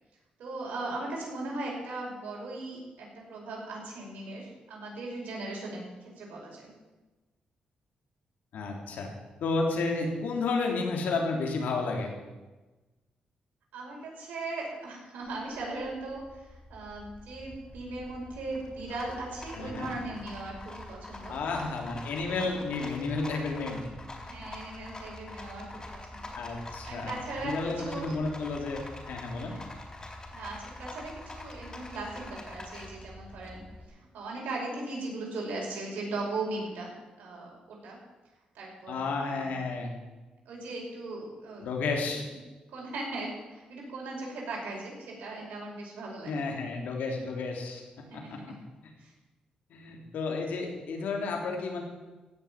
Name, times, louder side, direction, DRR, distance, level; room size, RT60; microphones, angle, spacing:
voice 1, 0.4-6.7 13.7-21.6 24.2-25.8 26.1-26.4 26.8-28.2 29.4-29.7 30.3-33.6 33.9-38.0 38.5-39.5 40.5-41.7 42.7-46.3 48.1-48.5 49.0-49.1, right 2 dB, 85° right, -2 dB, 5.5 m, -38 dB
voice 2, 8.5-9.1 9.4-12.1 19.6-19.9 21.3-23.9 26.3-27.1 27.4-29.5 38.9-39.9 41.6-42.2 46.2-47.8 48.1-48.4 49.7-51.8, left 3 dB, 85° left, 1 dB, 3.3 m, -32 dB
Rattle, 15.3-33.9, left 1 dB, 25° left, 3.8 m, -45 dB
16.0 x 6.7 x 9.2 m, 1.2 s
cardioid pair, 85°, 3 cm